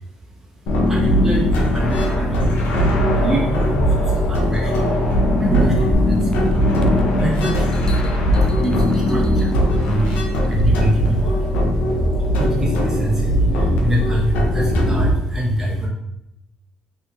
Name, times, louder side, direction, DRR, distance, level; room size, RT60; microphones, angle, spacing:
sound 1, 0.7-15.1, equal, 80° left, 0.7 m, -19 dB
voice 1, 0.9-2.5 3.1-4.7 5.4-6.4 7.1-7.7 8.4-9.5 9.8-11.5 12.2-15.9, right 1 dB, 10° right, -5 dB, 0.8 m, -25 dB
sound 2, 5.9-7.2 7.7-9.9 10.4-10.5, left 2 dB, 25° left, 0.3 m, -25 dB
2.7 x 2.7 x 3.4 m, 0.86 s
supercardioid pair, 80°, 3 cm